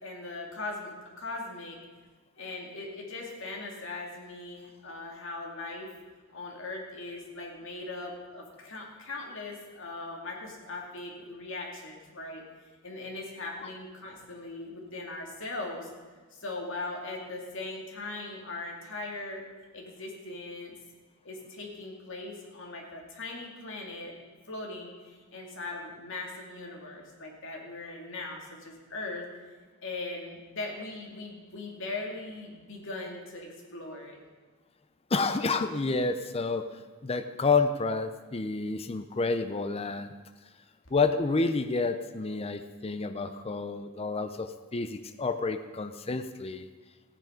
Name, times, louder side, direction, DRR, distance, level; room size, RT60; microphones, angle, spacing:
voice 1, 0.0-1.8 2.4-5.9 6.3-12.4 12.8-15.9 16.3-19.4 19.7-20.7 21.2-24.2 24.5-29.2 29.8-34.2, left 2 dB, 60° left, 0 dB, 2.6 m, -39 dB
voice 2, 35.1-40.1 40.9-46.7, left 4 dB, 30° left, 9 dB, 0.5 m, -29 dB
15.0 x 9.4 x 5.2 m, 1.4 s
head